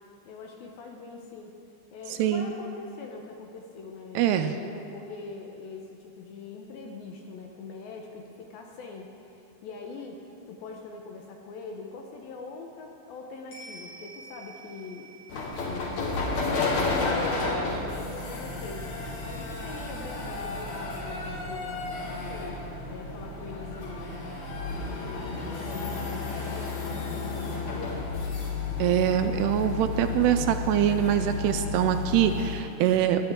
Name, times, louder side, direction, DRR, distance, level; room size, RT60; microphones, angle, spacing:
voice 1, 0.3-1.5 1.9-15.1 15.6-16.3 16.7-18.9 19.2-24.2 25.0-27.9, left 4 dB, 75° left, 1 dB, 2.4 m, -43 dB
voice 2, 4.2-4.5 28.8-33.3, right 10 dB, 85° right, 8 dB, 2.5 m, -24 dB
sound 1, 13.5-22.1 22.4-22.5, right 3 dB, 40° left, 4.1 m, -52 dB
sound 2, 15.3-32.7, left 4 dB, 60° left, 2.0 m, -32 dB
sound 3, 18.4-32.5, right 4 dB, 65° right, 0.9 m, -49 dB
18.5 x 10.5 x 3.6 m, 2.6 s
omnidirectional pair, 4.9 m